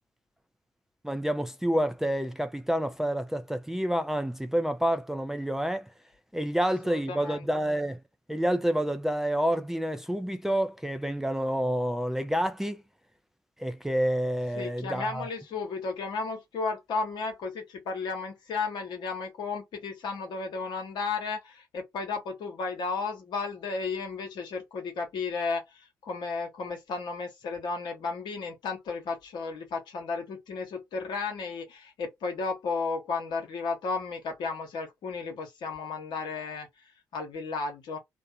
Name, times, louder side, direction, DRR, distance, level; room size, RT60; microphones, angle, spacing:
voice 1, 1.0-5.9 6.3-8.0 8.3-12.8 13.6-15.3, equal, 5° right, 0.3 m, -28 dB
voice 2, 6.6-7.5 14.6-36.7 37.1-38.0, left 4 dB, 55° left, 0.9 m, -34 dB
2.5 x 2.1 x 2.5 m
figure-of-eight pair, 40°, 9 cm